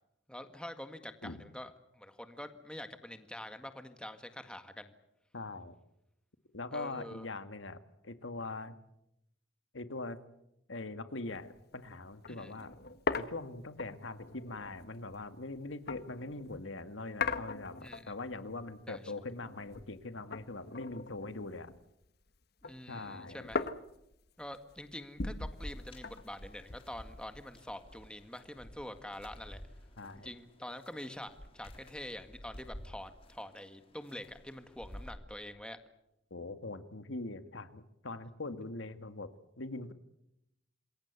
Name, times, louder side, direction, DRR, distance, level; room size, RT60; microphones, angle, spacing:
voice 1, 0.3-4.9 6.7-7.3 12.3-12.5 17.8-18.1 18.9-19.1 22.6-23.6 24.4-29.6 30.2-35.8, left 1 dB, 5° left, 8 dB, 1.8 m, -46 dB
voice 2, 5.3-5.7 6.5-7.8 8.0-8.8 9.7-10.2 10.7-12.8 13.2-21.7 22.9-23.5 30.0-30.3 36.3-39.9, left 2 dB, 85° left, 10 dB, 1.8 m, -42 dB
sound 1, 11.4-11.6 11.9-12.0 12.2-16.6 17.2-18.3 18.7-20.0 20.3-22.0 22.4-27.6, left 4 dB, 55° left, 1.4 m, -40 dB
sound 2, 25.6-35.2, equal, 30° left, 3.6 m, -51 dB
27.5 x 22.0 x 8.3 m, 0.83 s
head